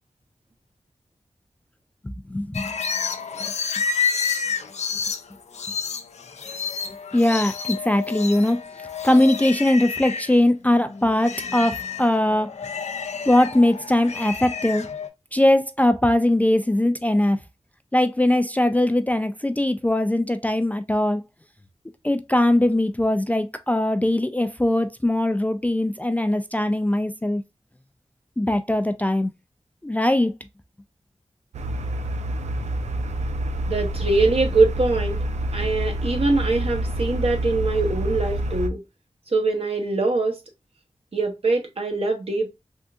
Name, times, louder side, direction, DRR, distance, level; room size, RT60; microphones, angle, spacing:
voice 1, 2.3-2.7 7.1-8.6 9.0-12.5 13.3-14.9 15.3-17.4 17.9-21.2 22.0-27.4 28.4-29.3 29.8-30.3, left 1 dB, 15° left, 0.3 m, -20 dB
sound 1, 2.5-10.4 10.8-15.1, left 6 dB, 75° left, 0.4 m, -30 dB
sound 2, 31.5-38.7, right 1 dB, 85° right, 0.4 m, -27 dB
voice 2, 33.7-35.2 35.5-38.8 39.3-40.4 41.1-42.5, right 3 dB, 60° right, 0.9 m, -23 dB
3.6 x 2.6 x 2.3 m
wide cardioid pair, 60°, 11 cm